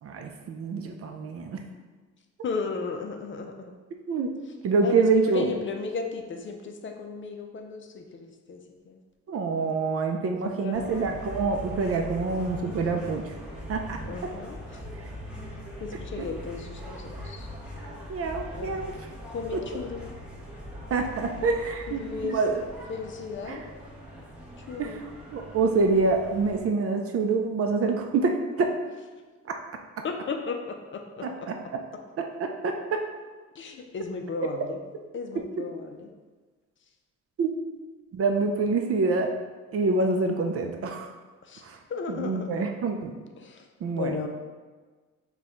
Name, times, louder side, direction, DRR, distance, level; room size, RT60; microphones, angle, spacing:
voice 1, 0.0-1.6 4.1-4.3 4.6-5.5 9.3-13.3 13.7-14.0 16.2-16.3 18.1-18.9 19.5-19.6 20.9-22.5 23.5-23.6 24.8-28.8 31.2-31.3 32.2-33.0 37.4-37.5 38.1-39.3 39.7-41.1 41.6-41.8 42.1-43.1 43.8-44.1, right 4 dB, 50° right, 4 dB, 0.5 m, -26 dB
voice 2, 2.4-3.7 4.8-9.0 10.4-11.2 14.1-14.8 15.8-17.5 18.6-18.8 19.3-20.1 21.3-21.5 21.9-22.4 22.9-23.6 24.7-25.0 30.0-31.3 33.5-34.8 35.1-36.1 41.4-41.6 41.9-42.6 43.4-43.7 43.9-44.3, left 4 dB, 40° left, 4 dB, 0.5 m, -35 dB
sound 1, 10.7-26.6, equal, 5° right, 1.1 m, -41 dB
4.2 x 2.3 x 3.7 m, 1.4 s
cardioid pair, 90°, 30 cm